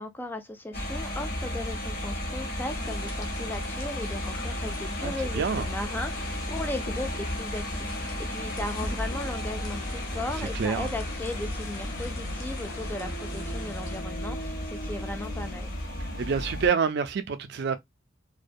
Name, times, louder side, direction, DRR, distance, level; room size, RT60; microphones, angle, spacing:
voice 1, 0.0-15.7, left 1 dB, 10° left, 0.3 m, -37 dB
sound 1, 0.7-16.7, left 1 dB, 50° left, 0.8 m, -33 dB
sound 2, 2.7-14.0, left 3 dB, 80° left, 0.7 m, -45 dB
voice 2, 5.0-5.7 10.4-10.9 16.0-17.8, right 6 dB, 60° right, 0.4 m, -28 dB
2.4 x 2.2 x 2.5 m
head